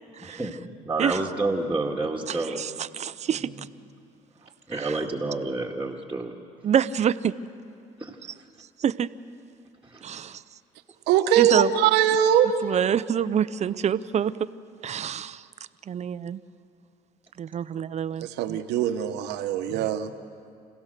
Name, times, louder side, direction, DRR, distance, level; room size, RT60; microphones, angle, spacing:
voice 1, 0.2-2.6 3.3-3.5 4.7-6.3 8.0-8.2 9.9-10.2 19.7-19.8, right 2 dB, 10° right, -3 dB, 1.9 m, -29 dB
voice 2, 2.3-3.7 4.7-5.0 6.6-7.3 8.8-9.1 10.0-10.4 11.4-11.7 12.6-14.5 14.8-15.5 15.9-16.4 17.4-18.6, right 8 dB, 40° right, 16 dB, 0.7 m, -27 dB
voice 3, 11.1-12.5 18.2-20.1, right 10 dB, 80° right, 9 dB, 1.2 m, -22 dB
27.0 x 16.5 x 6.8 m, 2.4 s
supercardioid pair, 75°, 17 cm